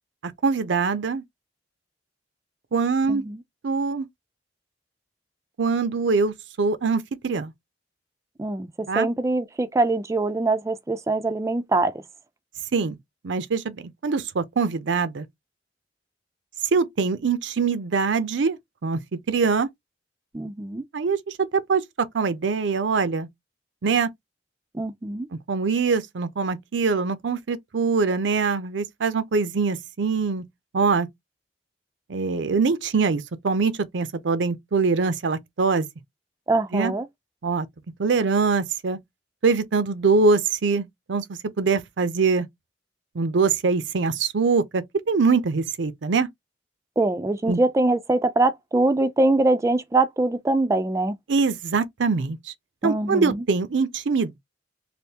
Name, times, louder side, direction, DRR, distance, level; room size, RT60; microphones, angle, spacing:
voice 1, 0.4-1.2 2.7-3.2 3.6-4.1 5.6-7.5 8.9-9.1 12.7-13.0 13.2-13.8 14.0-15.2 16.7-18.6 18.8-19.0 19.3-19.7 20.9-21.2 21.7-21.8 22.1-23.3 23.8-24.1 25.5-30.5 30.7-31.1 32.1-35.9 36.7-36.9 37.4-37.7 38.0-39.0 39.4-41.2 41.6-42.5 43.2-46.3 47.5-47.6 51.3-52.4 52.8-54.4, right 4 dB, 75° right, 0.5 m, -23 dB
voice 2, 3.1-3.4 8.4-11.9 20.3-20.8 24.7-25.3 36.5-37.1 47.0-51.2 52.8-53.4, right 2 dB, 15° right, 0.3 m, -23 dB
3.4 x 2.6 x 2.8 m
head